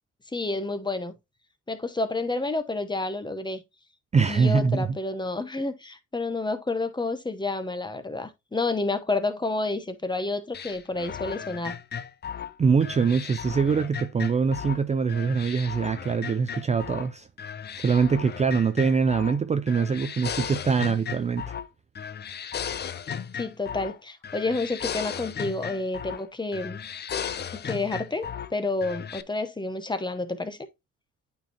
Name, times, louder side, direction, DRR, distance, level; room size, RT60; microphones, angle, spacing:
voice 1, 0.3-1.1 1.7-3.6 4.3-11.8 23.4-26.8 27.5-30.6, left 2 dB, 15° left, 0.9 m, -29 dB
voice 2, 4.1-5.0 12.6-17.3 17.8-21.6, right 5 dB, 25° right, 0.4 m, -23 dB
sound 1, 10.5-14.8 15.1-17.1 17.4-19.4 19.7-21.7 22.0-24.0 24.2-26.3 26.5-28.5 28.8-29.2, left 7 dB, 35° left, 0.5 m, -35 dB
8.9 x 4.5 x 2.8 m
cardioid pair, 90°, 30 cm